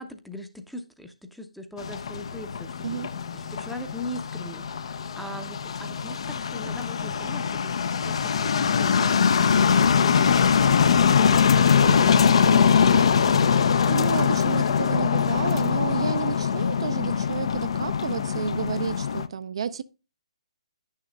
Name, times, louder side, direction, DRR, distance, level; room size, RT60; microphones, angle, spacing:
voice 1, 0.0-2.8 3.3-7.7 8.0-10.5, left 1 dB, ahead, 0.6 m, -40 dB
sound 1, 1.8-19.3, left 6 dB, 55° left, 0.5 m, -22 dB
voice 2, 2.8-3.1 13.8-19.8, right 7 dB, 55° right, 0.4 m, -31 dB
10.0 x 6.5 x 2.2 m
figure-of-eight pair, 140°, 4 cm